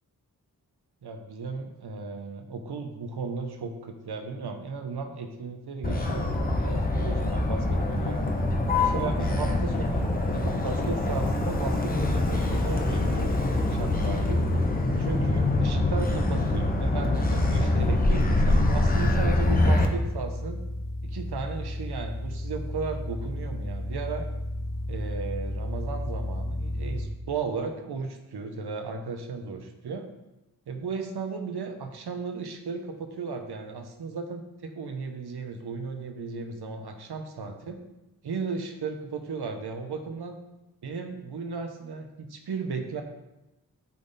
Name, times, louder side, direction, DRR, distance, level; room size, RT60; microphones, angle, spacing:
voice 1, 1.0-8.3 8.8-14.4 15.0-20.6 21.0-24.3 24.9-30.1 30.7-37.8 38.2-40.4 40.8-43.0, right 4 dB, 80° right, 5 dB, 0.9 m, -35 dB
Motor vehicle (road), 5.8-19.9, left 2 dB, 25° left, 0.8 m, -24 dB
sound 1, 15.5-27.0, left 1 dB, 55° left, 2.4 m, -35 dB
8.5 x 3.9 x 4.0 m, 0.98 s
wide cardioid pair, 115°, 39 cm